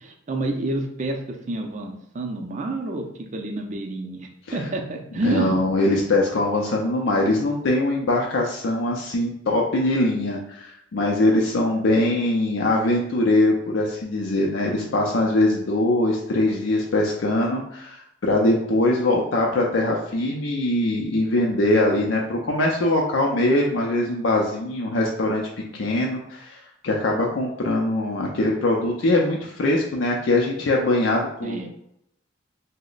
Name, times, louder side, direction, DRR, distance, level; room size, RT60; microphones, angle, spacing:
voice 1, 0.0-5.6 31.4-31.7, right 2 dB, 40° right, 3 dB, 0.5 m, -28 dB
voice 2, 5.2-25.4 25.7-26.6 26.8-31.7, left 2 dB, 85° left, -1 dB, 0.5 m, -22 dB
3.0 x 2.1 x 3.9 m, 0.77 s
head